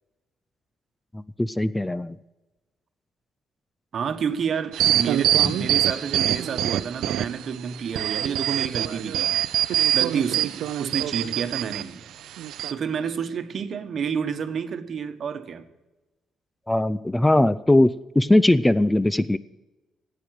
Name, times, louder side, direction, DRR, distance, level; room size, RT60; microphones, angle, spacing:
voice 1, 1.1-2.2 5.4-5.5 16.7-19.4, left 1 dB, 10° left, 16 dB, 0.4 m, -20 dB
voice 2, 3.9-9.4 9.9-12.0 12.7-15.6, right 7 dB, 55° right, 8 dB, 1.2 m, -29 dB
sound 1, 4.7-7.5 7.9-11.8 12.4-12.7, right 11 dB, 80° right, 0.5 m, -24 dB
14.0 x 8.7 x 7.8 m, 1.1 s
cardioid pair, 90°, 0 cm